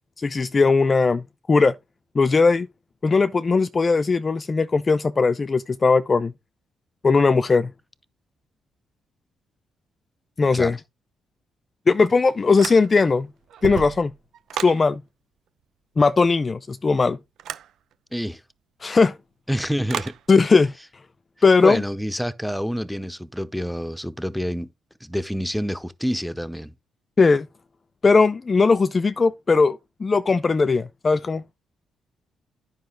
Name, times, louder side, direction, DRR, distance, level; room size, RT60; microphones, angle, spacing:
voice 1, 0.2-1.2 1.5-1.7 2.2-2.7 3.0-6.3 7.0-7.7 10.4-10.8 11.9-13.3 13.6-14.1 14.6-15.0 16.0-17.2 18.8-19.1 20.3-20.7 21.4-21.8 27.2-27.5 28.0-31.4, left 4 dB, 30° left, 0.4 m, -18 dB
sound 1, 12.6-13.2 13.5-14.8 17.4-17.7 19.9-20.2, right 10 dB, 75° right, 0.6 m, -32 dB
voice 2, 19.5-20.1 21.6-24.7 25.0-26.7, equal, ahead, 0.7 m, -27 dB
9.5 x 5.4 x 3.8 m
cardioid pair, 105°, 0 cm